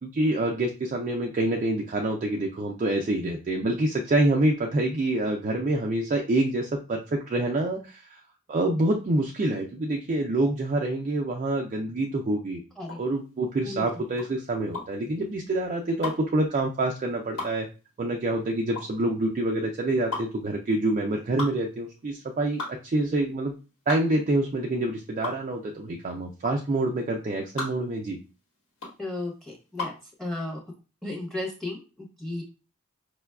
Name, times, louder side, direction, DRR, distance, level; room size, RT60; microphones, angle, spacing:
voice 1, 0.0-8.2 8.5-12.6 13.0-17.7 18.0-23.5 23.9-28.2, right 2 dB, 35° right, 0 dB, 0.3 m, -26 dB
sound 1, 12.8-30.1, left 3 dB, 90° left, 1.4 m, -38 dB
voice 2, 13.6-14.0 29.0-29.9 30.2-30.6 31.0-32.4, left 2 dB, ahead, 0 dB, 0.8 m, -34 dB
4.8 x 2.2 x 2.3 m, 0.32 s
head